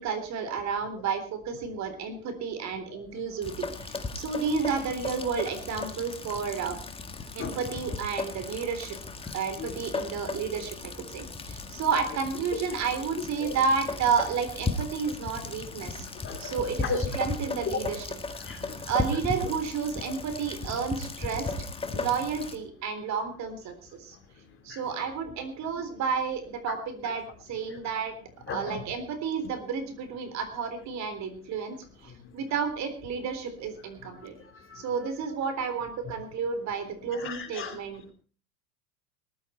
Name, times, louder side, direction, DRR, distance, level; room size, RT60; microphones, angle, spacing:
voice 1, 0.0-6.8 7.3-9.0 9.3-16.1 16.4-18.1 18.8-21.5 21.9-24.2 24.6-28.1 28.5-34.3 34.8-38.1, right 6 dB, 40° right, 9 dB, 3.7 m, -31 dB
Rain, 3.4-22.6, left 3 dB, 15° left, 1.7 m, -36 dB
voice 2, 16.2-17.2 18.4-18.8 20.0-20.1 21.4-21.5 21.9-22.1 24.7-24.8 26.7-26.8 27.7-27.8 28.5-28.8 34.7-34.8 37.1-37.8, left 6 dB, 30° left, 6 dB, 3.0 m, -37 dB
20.0 x 12.0 x 4.3 m, 0.39 s
hypercardioid pair, 105°, 44 cm